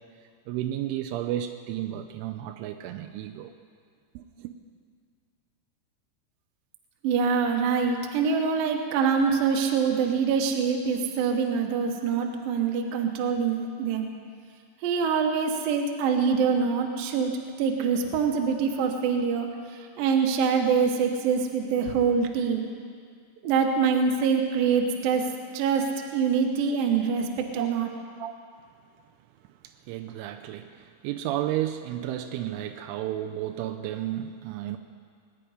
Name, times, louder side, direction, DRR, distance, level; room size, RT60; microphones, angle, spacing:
voice 1, 0.5-3.5 4.1-4.5 27.6-27.7 28.2-28.3 29.6-34.8, right 12 dB, 85° right, 6 dB, 3.1 m, -32 dB
voice 2, 7.0-14.1 14.8-17.3 17.6-22.7 23.4-27.9, right 6 dB, 70° right, 2 dB, 2.3 m, -25 dB
22.0 x 10.0 x 5.0 m, 2.1 s
omnidirectional pair, 5.4 m